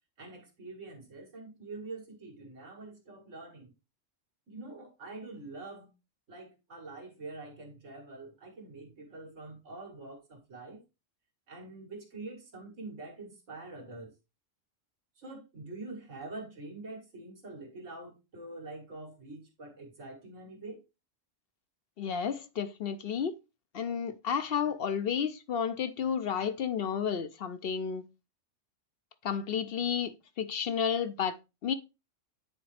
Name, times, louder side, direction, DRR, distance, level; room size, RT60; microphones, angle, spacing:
voice 1, 0.2-3.7 4.5-5.9 6.3-10.8 11.5-14.1 15.2-20.8, right 2 dB, 75° right, 2.3 m, -45 dB
voice 2, 22.0-23.4 23.7-28.0 29.2-31.4 31.6-31.7, left 7 dB, 60° left, 0.7 m, -31 dB
9.5 x 3.9 x 3.3 m
omnidirectional pair, 1.3 m